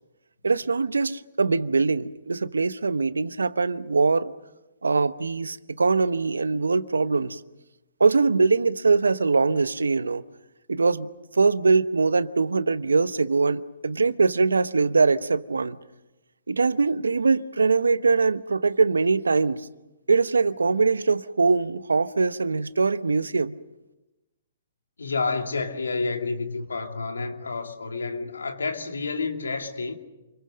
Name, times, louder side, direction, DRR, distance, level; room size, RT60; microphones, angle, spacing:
voice 1, 0.4-4.3 4.8-7.4 8.0-10.2 10.7-15.8 16.5-19.7 20.1-23.6, right 4 dB, 90° right, 0.9 m, -22 dB
voice 2, 25.0-29.9, left 4 dB, 85° left, 2.6 m, -29 dB
28.5 x 22.5 x 6.5 m
hypercardioid pair, 135°, 0 cm